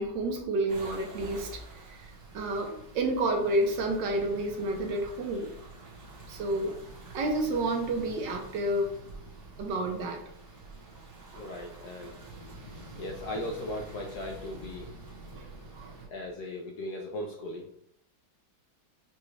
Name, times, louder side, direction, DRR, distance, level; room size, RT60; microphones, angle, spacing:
voice 1, 0.0-5.5 6.3-6.8 7.1-8.9 9.6-10.2 15.4-15.5 15.7-15.9, right 1 dB, 70° right, 2 dB, 1.3 m, -30 dB
sound 1, 0.7-16.1, right 3 dB, 45° right, 1.2 m, -47 dB
voice 2, 11.3-14.9 15.3-15.4 16.1-17.7, left 1 dB, 75° left, 1 dB, 0.9 m, -38 dB
6.1 x 2.3 x 3.2 m, 0.70 s
omnidirectional pair, 2.2 m